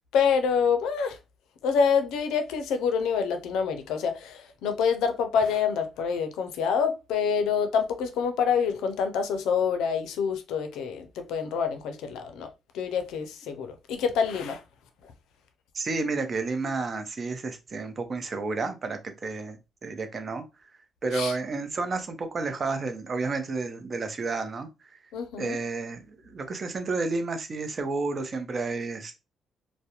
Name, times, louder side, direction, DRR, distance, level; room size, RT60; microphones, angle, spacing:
voice 1, 0.1-1.2 1.6-14.6 15.0-15.1 21.1-21.4 25.1-25.6, left 6 dB, 90° left, 0.4 m, -27 dB
voice 2, 15.7-20.4 21.0-24.7 25.4-29.2, right 3 dB, 40° right, 0.6 m, -31 dB
2.3 x 2.0 x 2.8 m
cardioid pair, 90°, 0 cm